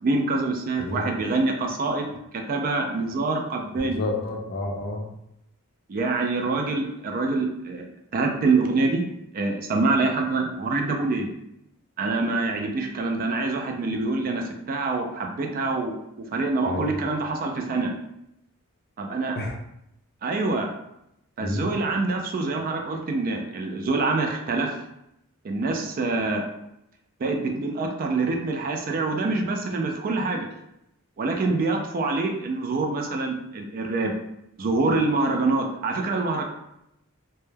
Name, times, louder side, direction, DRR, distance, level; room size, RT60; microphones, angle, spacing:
voice 1, 0.0-4.0 5.9-7.9 8.1-9.0 9.3-11.3 12.0-16.0 16.3-17.9 19.0-19.3 20.2-20.7 21.4-24.8 25.4-26.5 27.2-30.5 31.2-34.1 34.6-36.4, right 3 dB, 40° right, 2 dB, 0.3 m, -25 dB
voice 2, 0.8-1.1 3.8-5.1 16.7-16.9 19.3-19.5 21.4-21.7, left 2 dB, 45° left, 1 dB, 0.4 m, -30 dB
2.1 x 2.1 x 3.2 m, 0.82 s
head